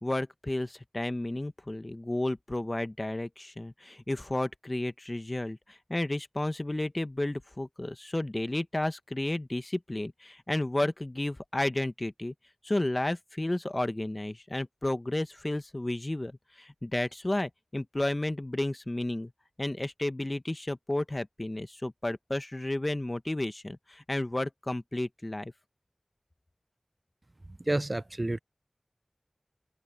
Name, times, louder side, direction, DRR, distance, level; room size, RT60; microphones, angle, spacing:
voice 1, 0.0-12.3 12.6-19.3 19.6-25.5, left 1 dB, 40° left, 1.1 m, -32 dB
voice 2, 27.6-28.4, right 1 dB, 45° right, 0.4 m, -29 dB
wide cardioid pair, 45°, 0 cm